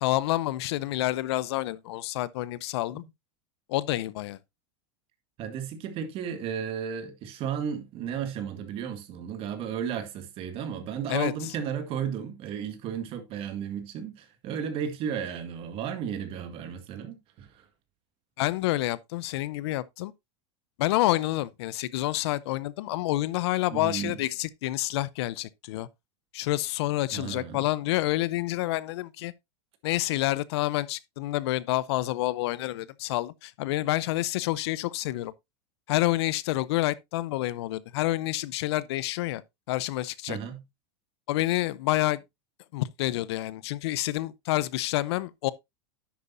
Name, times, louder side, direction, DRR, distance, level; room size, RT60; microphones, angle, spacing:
voice 1, 0.0-3.0 3.7-4.4 11.1-11.3 18.4-20.1 20.8-25.9 26.3-29.3 29.8-35.3 35.9-39.4 39.7-40.4 41.3-42.2 42.7-45.5, left 17 dB, 70° left, 0.7 m, -28 dB
voice 2, 5.4-17.6 23.7-24.2 27.1-27.7 40.3-40.6, right 8 dB, 40° right, 1.9 m, -34 dB
10.5 x 8.1 x 2.6 m
supercardioid pair, 140°, 14 cm